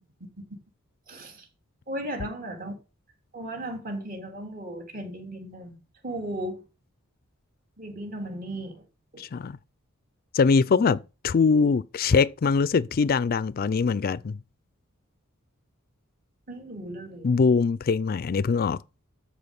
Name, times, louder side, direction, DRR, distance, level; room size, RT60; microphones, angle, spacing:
voice 1, 1.1-1.5 1.9-2.8 3.3-5.8 6.0-6.6 7.8-8.8 9.1-9.2 10.7-10.9 16.5-17.3, right 1 dB, 45° right, 3.3 m, -36 dB
voice 2, 9.2-9.6 10.3-14.4 17.2-18.8, left 5 dB, 45° left, 0.4 m, -22 dB
13.5 x 4.8 x 5.3 m
head